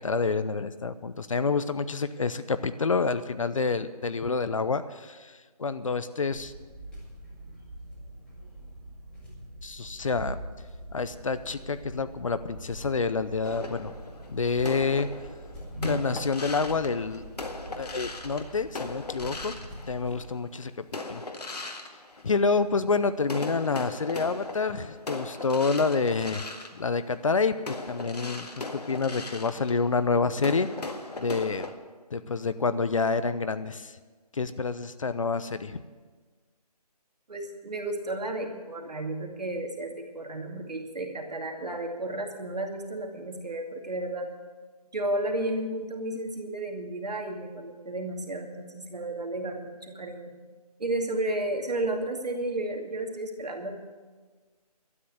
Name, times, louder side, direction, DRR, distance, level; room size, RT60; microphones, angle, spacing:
voice 1, 0.0-6.5 9.6-10.4 10.9-13.9 14.3-15.1 15.8-17.2 17.8-19.6 19.9-21.2 21.5-21.6 22.2-26.4 26.7-30.7 31.2-31.7 32.1-34.0 34.3-35.8, left 4 dB, 55° left, 13 dB, 0.7 m, -28 dB
sound 1, 6.3-20.3, right 1 dB, 5° left, 2.4 m, -42 dB
sound 2, 13.4-20.4 20.9-22.9 23.2-31.7, left 2 dB, 75° left, 1.9 m, -39 dB
voice 2, 37.3-44.3 44.9-50.4 50.8-53.8, right 1 dB, 80° right, 3 dB, 2.4 m, -32 dB
12.5 x 10.0 x 8.4 m, 1.4 s
figure-of-eight pair, 165°, 20 cm